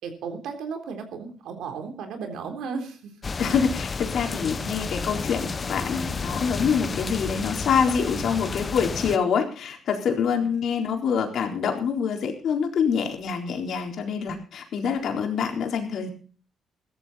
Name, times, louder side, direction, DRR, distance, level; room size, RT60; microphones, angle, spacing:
voice 1, 0.0-3.2, right 5 dB, 80° right, 5 dB, 3.6 m, -34 dB
sound 1, 3.2-9.2, left 4 dB, 35° left, 0.7 m, -31 dB
voice 2, 3.4-16.1, left 6 dB, 65° left, 2 dB, 4.0 m, -26 dB
16.0 x 14.0 x 4.2 m, 0.40 s
cardioid pair, 90°, 0 cm